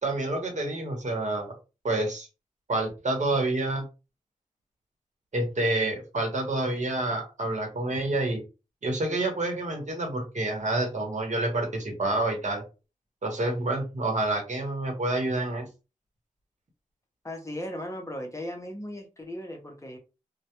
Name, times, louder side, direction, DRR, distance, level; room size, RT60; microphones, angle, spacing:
voice 1, 0.0-1.6 1.8-2.3 2.7-3.9 5.3-8.4 8.8-12.6 13.2-15.7, right 2 dB, 65° right, 1 dB, 0.9 m, -28 dB
voice 2, 17.2-20.0, left 1 dB, 25° left, 2 dB, 0.6 m, -37 dB
2.2 x 2.1 x 2.8 m, 0.30 s
wide cardioid pair, 85°, 13 cm